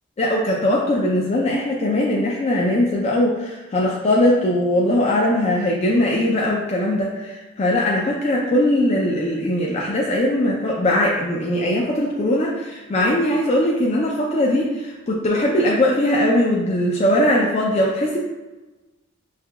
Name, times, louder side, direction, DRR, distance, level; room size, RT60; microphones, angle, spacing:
voice 1, 0.2-18.2, left 1 dB, 30° left, -3 dB, 0.3 m, -20 dB
5.6 x 2.2 x 2.2 m, 1.2 s
head